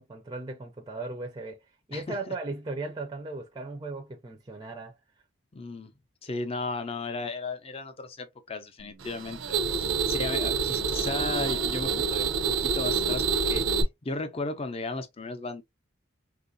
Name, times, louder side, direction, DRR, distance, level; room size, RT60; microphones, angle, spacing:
voice 1, 0.0-5.0, right 3 dB, 20° right, 0.4 m, -37 dB
voice 2, 5.5-5.9 6.2-15.6, left 3 dB, 30° left, 0.5 m, -35 dB
sound 1, 9.0-13.8, right 5 dB, 85° right, 0.5 m, -27 dB
3.6 x 2.4 x 2.5 m
head